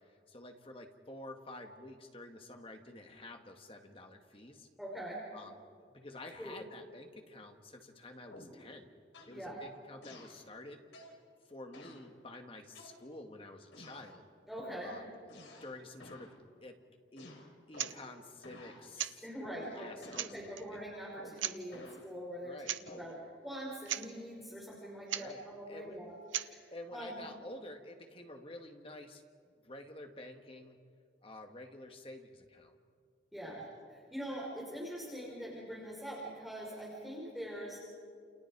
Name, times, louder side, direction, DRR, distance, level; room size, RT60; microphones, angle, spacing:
voice 1, 0.0-4.7 5.3-5.6 5.9-8.9 9.3-10.8 11.5-14.2 14.8-15.0 15.6-16.8 17.1-17.3 17.7-19.2 19.7-20.8 22.4-22.7 25.1-26.0 26.7-29.2 29.6-30.8 31.2-32.7 33.4-33.6, left 2 dB, 30° left, 4 dB, 2.0 m, -50 dB
voice 2, 4.8-5.2 6.4-6.5 9.2-9.6 14.5-15.0 19.2-27.2 33.3-33.6 33.9-37.8, equal, ahead, -5 dB, 4.8 m, -43 dB
sound 1, 8.3-8.7 9.1-9.4 10.0-10.4 10.9-11.2 11.7-12.1 12.7-13.3 13.7-14.1 14.6-14.9 15.3-15.7 16.0-16.3 17.2-18.1 18.4-18.8 19.4-19.7 20.0-20.4 21.2-22.0 22.9-23.2, left 1 dB, 80° left, 3.9 m, -52 dB
sound 2, 17.7-18.0 18.9-19.2 19.8-19.9 20.1-20.6 21.4-21.6 22.6-22.8 23.1-23.2 23.6-23.7 23.8-24.1 25.1-25.3 26.3-26.5, right 11 dB, 90° right, 1.0 m, -37 dB
29.5 x 29.0 x 4.8 m, 2.1 s
head